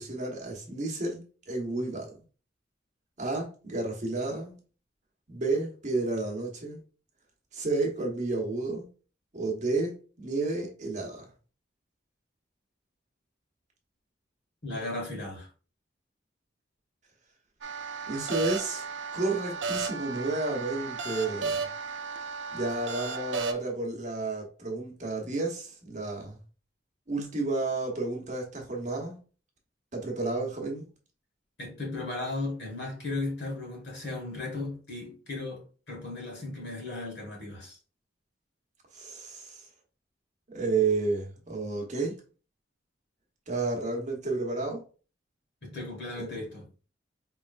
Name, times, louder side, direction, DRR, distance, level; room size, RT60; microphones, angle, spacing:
voice 1, 0.0-2.1 3.2-4.5 5.3-6.8 7.5-8.9 9.3-11.2 18.1-18.9 19.1-21.6 22.5-26.4 27.1-29.2 29.9-30.9 38.9-39.6 40.5-42.2 43.5-44.8 46.2-46.4, right 3 dB, 40° right, 1.1 m, -31 dB
voice 2, 14.6-15.5 31.6-37.8 45.6-46.6, left 2 dB, 65° left, 1.7 m, -36 dB
sound 1, 17.6-23.5, right 4 dB, 85° right, 0.5 m, -34 dB
5.0 x 3.2 x 2.5 m
head